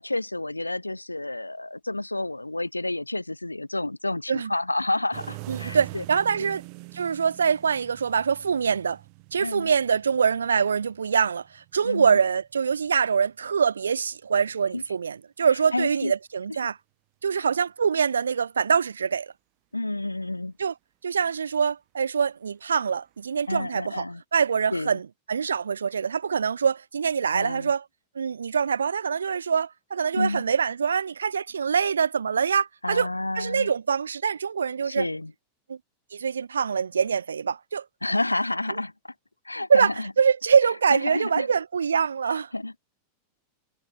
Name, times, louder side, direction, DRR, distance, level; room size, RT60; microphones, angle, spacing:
voice 1, 0.0-6.0 6.4-6.5 9.4-9.7 11.8-12.2 14.7-14.8 15.7-16.1 17.3-17.5 19.7-20.5 23.5-24.2 24.7-25.0 27.3-27.7 30.1-30.4 32.8-33.7 34.9-35.3 38.0-38.9 39.5-40.1 40.9-41.5 42.3-42.8, left 2 dB, 85° left, 2.0 m, -30 dB
sound 1, 5.1-12.9 14.5-14.9 23.3-23.4, right 40 dB or more, 45° right, 4.2 m, -44 dB
voice 2, 5.5-6.6 6.9-9.0 9.3-16.8 17.2-19.3 20.6-20.7 21.0-24.1 24.3-27.8 28.2-33.1 33.4-35.1 35.7-35.8 36.1-37.8 39.7-42.5, right 6 dB, 70° right, 0.4 m, -24 dB
figure-of-eight pair, 90°, 0 cm